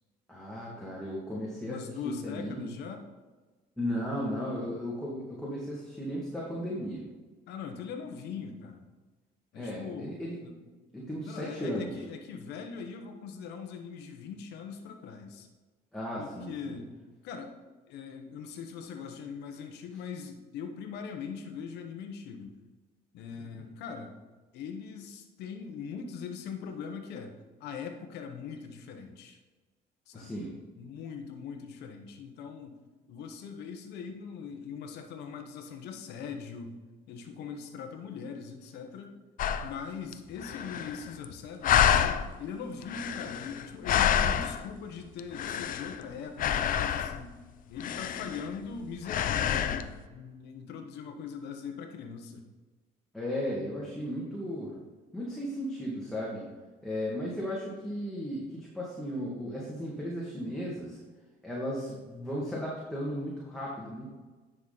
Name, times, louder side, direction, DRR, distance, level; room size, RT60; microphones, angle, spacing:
voice 1, 0.3-2.7 3.8-7.0 9.5-10.4 10.9-11.9 15.9-16.8 30.1-30.5 53.1-54.7 55.1-56.4 56.8-61.0 61.4-64.0, equal, 5° left, -6 dB, 2.0 m, -35 dB
voice 2, 1.7-3.0 7.5-8.9 9.5-10.6 11.2-15.5 16.2-16.9 17.2-17.6 17.9-22.5 23.1-24.1 24.5-29.4 30.1-30.5 30.8-32.8 33.1-36.8 37.1-39.1 39.6-47.3 47.7-52.5, left 6 dB, 80° left, 4 dB, 1.1 m, -41 dB
sound 1, 39.4-39.7 40.1-40.2 40.4-41.3 41.6-42.3 42.8-44.7 45.2-46.0 46.4-47.2 47.8-48.7 49.1-49.9, left 9 dB, 55° left, 0.6 m, -28 dB
10.0 x 6.1 x 4.0 m, 1.3 s
cardioid pair, 110°, 17 cm